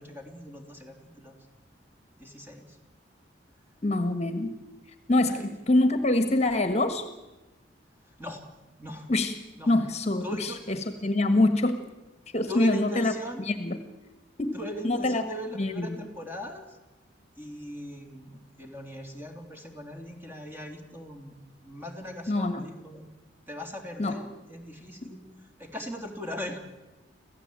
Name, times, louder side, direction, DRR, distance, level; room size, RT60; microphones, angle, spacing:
voice 1, 0.0-1.3 2.2-2.8 5.3-5.4 8.0-8.4 8.8-9.1 9.6-9.8 10.2-10.6 12.5-13.4 14.5-16.8 17.4-21.4 21.6-23.1 23.5-25.2 25.6-26.6, equal, 10° right, 3 dB, 3.4 m, -39 dB
voice 2, 3.8-4.5 5.1-7.1 9.1-9.3 9.7-11.8 12.3-13.1 13.5-13.8 14.4-14.5 14.8-15.2 15.6-15.9 22.3-22.6 24.0-24.1, left 2 dB, 35° left, 9 dB, 1.5 m, -25 dB
26.5 x 15.5 x 8.9 m, 1.1 s
head